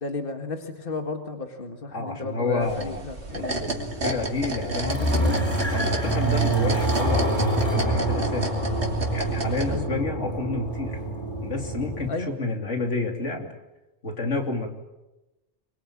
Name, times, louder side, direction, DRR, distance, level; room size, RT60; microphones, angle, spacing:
voice 1, 0.0-3.6 4.7-5.4 9.7-9.9 12.1-12.3, left 3 dB, 50° left, 6 dB, 2.1 m, -33 dB
voice 2, 1.9-3.0 3.3-5.0 5.7-8.5 9.1-11.0 11.4-13.5 14.0-14.7, left 3 dB, 80° left, 3 dB, 3.4 m, -30 dB
sound 1, 2.6-9.8, right 2 dB, 65° right, 2.9 m, -31 dB
sound 2, 3.5-12.1, right 2 dB, 20° left, 5.1 m, -26 dB
24.5 x 22.0 x 8.8 m, 1.0 s
omnidirectional pair, 1.2 m